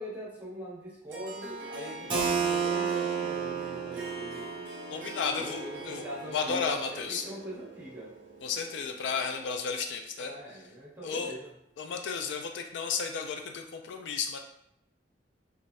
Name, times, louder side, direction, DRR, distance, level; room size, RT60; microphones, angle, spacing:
voice 1, 0.0-4.6 5.3-8.1 10.2-11.5, equal, 10° right, -6 dB, 0.9 m, -42 dB
Harp, 1.1-9.5, equal, 80° right, 0.5 m, -44 dB
Keyboard (musical), 2.1-7.6, right 6 dB, 30° right, 0.5 m, -33 dB
voice 2, 4.9-6.0 6.3-7.2 8.4-10.4 11.0-11.3 11.8-14.4, left 5 dB, 75° left, 4 dB, 0.3 m, -33 dB
3.1 x 2.5 x 2.6 m, 0.78 s
head